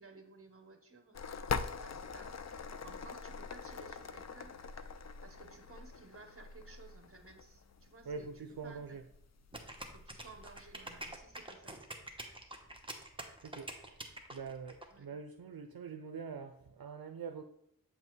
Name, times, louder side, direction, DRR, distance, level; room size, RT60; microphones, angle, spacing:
voice 1, 0.0-4.6 5.2-8.3 8.6-9.0 9.9-11.8 14.9-15.1, right 3 dB, 40° right, 5 dB, 1.1 m, -56 dB
sound 1, 1.1-11.2, left 5 dB, 50° left, 0.4 m, -44 dB
voice 2, 8.1-9.0 13.4-14.0 14.3-17.4, right 5 dB, 75° right, 6 dB, 0.5 m, -44 dB
sound 2, 9.5-14.9, right 1 dB, 15° right, 0.9 m, -46 dB
7.9 x 5.5 x 3.1 m, 0.70 s
wide cardioid pair, 55°, 36 cm